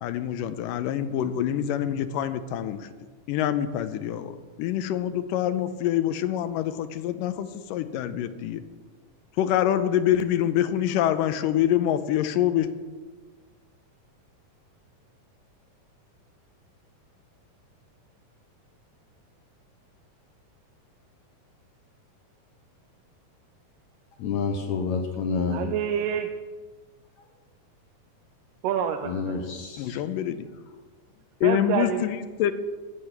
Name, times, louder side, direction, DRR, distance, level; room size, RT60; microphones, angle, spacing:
voice 1, 0.0-2.9 3.3-4.3 4.6-8.6 9.4-12.7 29.8-30.5 31.4-32.5, left 11 dB, 90° left, 11 dB, 2.3 m, -25 dB
voice 2, 24.2-25.6 29.1-30.0, left 5 dB, 70° left, 4 dB, 2.0 m, -28 dB
voice 3, 25.5-26.3 28.6-29.4 31.4-32.0, right 9 dB, 85° right, 6 dB, 2.3 m, -27 dB
13.5 x 8.3 x 5.9 m, 1.4 s
omnidirectional pair, 3.8 m